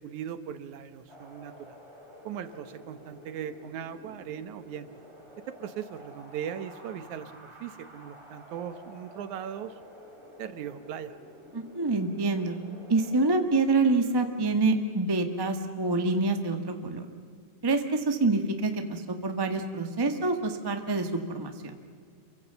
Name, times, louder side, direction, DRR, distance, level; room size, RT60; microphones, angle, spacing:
voice 1, 0.0-1.8 2.2-4.9 5.5-9.7 10.4-11.2, right 9 dB, 70° right, 11 dB, 2.3 m, -39 dB
Wind, 1.1-13.3, equal, 10° right, 4.0 m, -50 dB
voice 2, 11.5-12.5 12.9-17.0 17.6-21.7, right 3 dB, 35° right, 6 dB, 0.3 m, -26 dB
28.5 x 24.0 x 7.0 m, 2.1 s
omnidirectional pair, 3.8 m